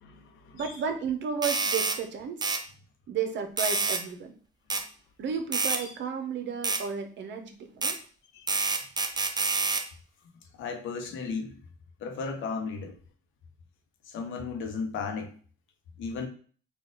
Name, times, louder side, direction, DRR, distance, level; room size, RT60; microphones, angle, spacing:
voice 1, 0.0-0.8 5.7-5.9 8.3-8.5 10.6-11.5 12.0-12.9 14.1-15.3 16.0-16.3, left 4 dB, 80° left, 0.8 m, -35 dB
voice 2, 0.5-2.6 3.1-4.3 5.2-8.0, right 6 dB, 65° right, 0.8 m, -33 dB
sound 1, 1.4-2.0 2.4-2.6 3.6-4.0 4.7-4.8 5.5-5.8 6.6-6.8 7.8-8.0 8.5-9.9, right 3 dB, 20° right, 0.5 m, -27 dB
4.2 x 2.4 x 3.8 m
cardioid pair, 85°, 20 cm